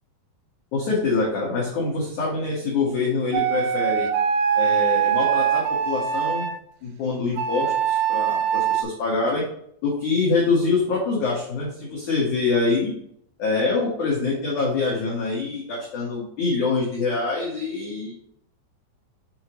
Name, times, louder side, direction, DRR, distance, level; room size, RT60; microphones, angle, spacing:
voice 1, 0.7-4.1 4.5-6.5 6.8-9.4 9.8-12.9 13.4-18.1, left 4 dB, 75° left, -5 dB, 1.8 m, -25 dB
Flute - A natural minor, 3.3-6.6 7.4-8.8, right 9 dB, 85° right, 2.3 m, -22 dB
7.4 x 4.5 x 3.0 m, 0.67 s
omnidirectional pair, 5.5 m